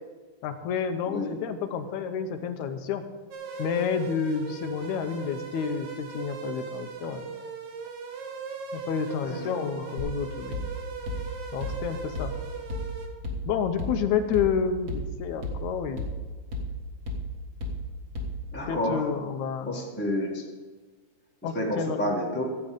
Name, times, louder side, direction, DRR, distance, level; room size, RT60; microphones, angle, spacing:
voice 1, 0.4-3.0 3.6-7.3 8.7-10.6 11.5-12.3 13.5-16.1 18.7-19.8 21.4-22.0, left 6 dB, 85° left, 7 dB, 2.2 m, -29 dB
sound 1, 3.3-13.1, right 6 dB, 80° right, 2.7 m, -39 dB
voice 2, 9.2-9.7 18.5-19.0 19.7-20.4 21.5-22.4, left 1 dB, 5° left, -3 dB, 1.1 m, -29 dB
sound 2, 10.0-18.7, equal, 35° right, 1.7 m, -35 dB
14.5 x 8.4 x 5.1 m, 1.4 s
omnidirectional pair, 3.3 m